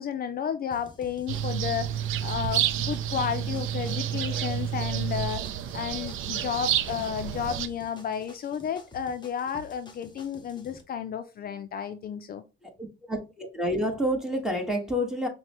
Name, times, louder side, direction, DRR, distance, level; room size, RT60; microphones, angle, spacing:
voice 1, 0.0-5.4 5.7-12.4, left 8 dB, 50° left, 0.4 m, -32 dB
sound 1, 0.7-10.8, left 2 dB, 20° left, 1.0 m, -50 dB
sound 2, 1.3-7.7, right 10 dB, 85° right, 0.4 m, -29 dB
voice 2, 13.1-15.3, equal, ahead, 1.3 m, -28 dB
5.8 x 2.2 x 2.9 m
cardioid pair, 90°, 20 cm